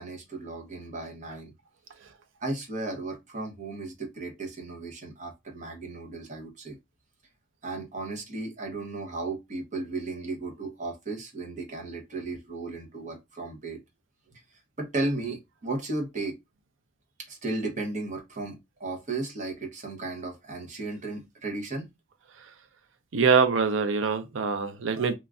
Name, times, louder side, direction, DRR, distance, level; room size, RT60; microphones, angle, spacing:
voice 1, 0.0-1.5 2.4-6.8 7.6-13.8 14.3-14.4 14.8-16.3 17.3-21.9, right 2 dB, 40° right, 0.9 m, -35 dB
voice 2, 23.1-25.1, right 5 dB, 80° right, 0.5 m, -24 dB
3.0 x 2.4 x 2.3 m
head